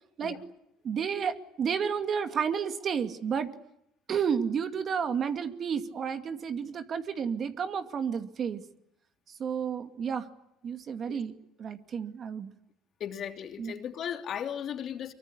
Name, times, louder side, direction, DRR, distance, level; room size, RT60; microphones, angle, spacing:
voice 1, 0.8-3.5 4.1-8.6 9.4-10.3 10.6-11.3 11.6-12.5 13.6-13.7, right 7 dB, 45° right, 8 dB, 2.4 m, -31 dB
voice 2, 13.0-15.1, left 9 dB, 50° left, 6 dB, 3.0 m, -36 dB
25.0 x 23.5 x 10.0 m, 0.77 s
supercardioid pair, 100°, 0 cm